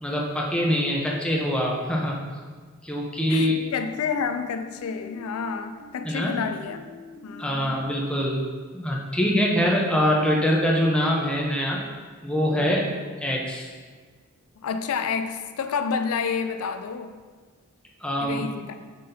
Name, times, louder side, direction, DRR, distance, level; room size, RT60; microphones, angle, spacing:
voice 1, 0.0-2.2 2.8-3.6 6.0-6.4 7.4-8.4 8.7-11.8 12.2-12.9 13.2-13.7 18.0-18.4, equal, 5° left, 0.7 m, -24 dB
voice 2, 3.3-6.8 7.2-7.8 14.6-17.2 18.2-18.9, left 6 dB, 80° left, 0.4 m, -29 dB
sound 1, 3.5-8.5, left 2 dB, 35° right, 1.0 m, -46 dB
7.4 x 5.8 x 2.7 m
head